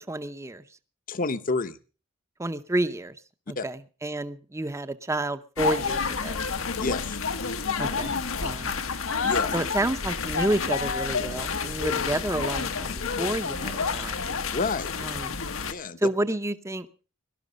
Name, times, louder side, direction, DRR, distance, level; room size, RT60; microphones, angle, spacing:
voice 1, 0.1-0.6 2.4-3.2 3.5-6.4 7.8-8.1 8.4-8.7 9.5-14.2 15.0-15.4 16.0-16.9, right 1 dB, 15° right, 12 dB, 0.7 m, -30 dB
voice 2, 1.1-1.8 3.6-3.7 6.8-7.2 9.2-9.5 14.5-14.9 15.7-16.1, left 3 dB, 45° left, 12 dB, 0.8 m, -29 dB
sound 1, 5.6-15.7, left 5 dB, 80° left, 1.1 m, -29 dB
17.5 x 12.0 x 5.2 m, 0.37 s
head